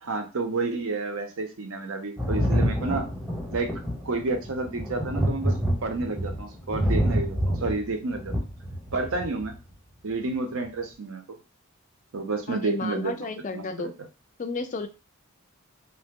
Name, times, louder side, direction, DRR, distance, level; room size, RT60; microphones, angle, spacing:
voice 1, 0.0-3.1 3.5-3.7 4.0-5.5 5.8-8.3 8.9-9.5 10.0-11.2 12.1-13.9, right 3 dB, 65° right, 5 dB, 0.6 m, -30 dB
Thunder, 2.2-9.5 10.6-10.7, equal, 5° right, 0.8 m, -27 dB
voice 2, 12.5-13.9 14.4-14.9, left 4 dB, 35° left, 8 dB, 0.3 m, -32 dB
2.8 x 2.1 x 3.6 m, 0.30 s
head